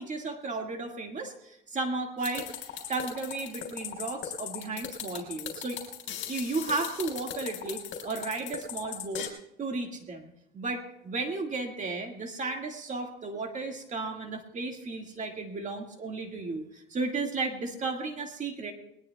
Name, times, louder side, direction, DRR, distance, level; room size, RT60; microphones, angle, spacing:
voice 1, 0.0-2.5 2.9-5.8 6.1-9.3 9.6-18.7, right 3 dB, 35° right, 3 dB, 2.0 m, -34 dB
sound 1, 2.2-9.3, left 9 dB, 65° left, 3.7 m, -38 dB
21.0 x 19.5 x 2.3 m, 0.80 s
cardioid pair, 120°, 21 cm